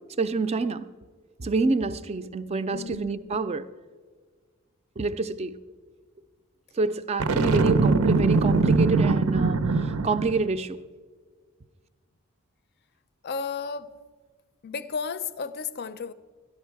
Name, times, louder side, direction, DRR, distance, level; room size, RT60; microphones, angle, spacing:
voice 1, 0.2-0.9 1.4-3.7 5.0-5.5 6.8-10.8, right 3 dB, 30° right, 0.4 m, -27 dB
voice 2, 2.7-3.1 13.2-13.9 14.6-16.1, left 5 dB, 50° left, 0.5 m, -33 dB
Boom, 7.2-10.4, right 4 dB, 90° right, 0.6 m, -22 dB
13.0 x 11.0 x 4.7 m
head